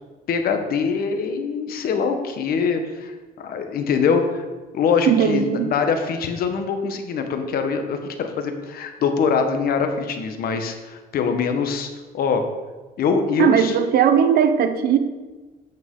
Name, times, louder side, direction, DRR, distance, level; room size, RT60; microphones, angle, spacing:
voice 1, 0.3-4.4 4.7-11.9 12.1-12.4 13.0-13.8, left 5 dB, 60° left, 6 dB, 1.1 m, -23 dB
voice 2, 5.1-5.7 13.4-15.0, right 8 dB, 65° right, 9 dB, 0.8 m, -18 dB
8.9 x 6.0 x 3.7 m, 1.3 s
cardioid pair, 110°, 17 cm